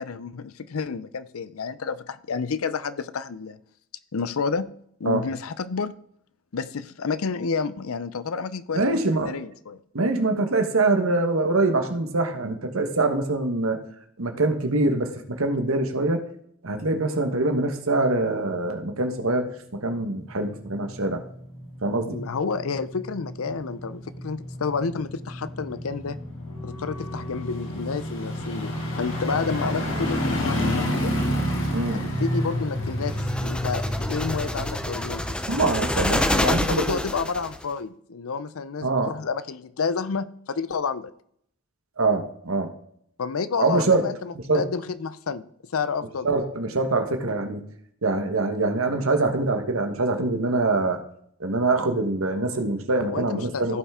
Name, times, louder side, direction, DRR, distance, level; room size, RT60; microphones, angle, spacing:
voice 1, 0.0-3.6 4.1-4.7 5.0-5.9 6.5-9.8 22.0-26.2 26.6-31.1 31.9-35.4 36.0-41.1 43.2-45.5 45.7-46.3 53.0-53.8, left 5 dB, 85° left, 15 dB, 0.6 m, -30 dB
voice 2, 8.7-9.3 9.9-13.8 14.2-16.2 16.6-21.2 21.8-22.2 31.7-32.0 35.5-37.0 38.8-39.1 42.0-42.7 43.6-44.1 44.5-44.6 46.2-47.6 48.0-51.0 51.4-53.8, right 2 dB, 80° right, 6 dB, 1.3 m, -24 dB
sound 1, 20.0-36.5 36.9-37.0, left 1 dB, 65° left, 2.4 m, -30 dB
Wind instrument woodwind instrument, 26.4-33.5, right 4 dB, 60° right, 3.0 m, -48 dB
sound 2, 33.1-37.6, left 1 dB, 5° left, 0.4 m, -27 dB
15.5 x 5.7 x 3.6 m, 0.67 s
head